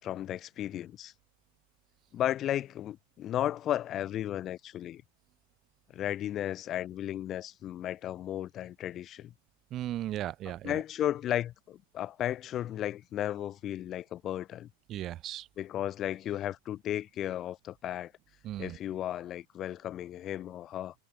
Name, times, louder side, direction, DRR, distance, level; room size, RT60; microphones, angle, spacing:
voice 1, 0.0-1.1 2.1-5.0 5.9-9.3 10.4-14.7 15.6-18.1 18.6-20.9, left 12 dB, 30° left, 3.4 m, -34 dB
voice 2, 9.7-10.8 14.9-15.5 18.4-18.8, right 13 dB, 30° right, 1.4 m, -36 dB
figure-of-eight pair, 90°, 0 cm